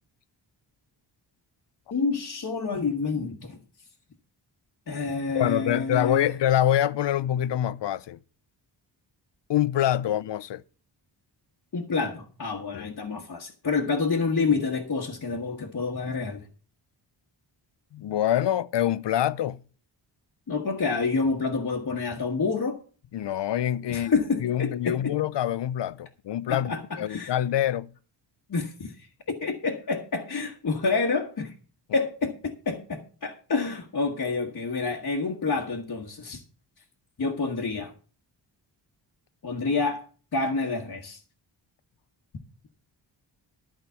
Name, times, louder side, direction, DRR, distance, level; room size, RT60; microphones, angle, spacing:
voice 1, 1.9-3.6 4.9-6.3 11.7-16.5 20.5-22.8 23.9-25.1 26.5-27.3 28.5-31.5 31.9-36.4 37.2-37.9 39.4-41.2, left 4 dB, 45° left, 1.4 m, -28 dB
voice 2, 5.3-8.2 9.5-10.6 12.7-12.9 17.9-19.6 23.1-24.1 24.4-27.9, left 11 dB, 70° left, 0.6 m, -25 dB
12.0 x 5.1 x 8.2 m
wide cardioid pair, 140°, 45 cm